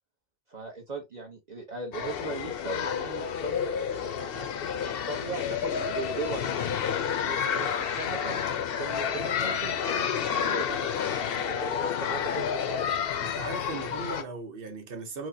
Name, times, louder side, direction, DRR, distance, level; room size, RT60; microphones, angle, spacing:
voice 1, 0.5-6.5 7.2-8.4 8.8-12.8, right 3 dB, 45° right, 1.0 m, -39 dB
sound 1, 1.9-14.2, left 7 dB, 70° left, 0.8 m, -30 dB
voice 2, 13.2-15.3, right 3 dB, 65° right, 1.1 m, -38 dB
4.6 x 2.1 x 2.7 m
omnidirectional pair, 1.0 m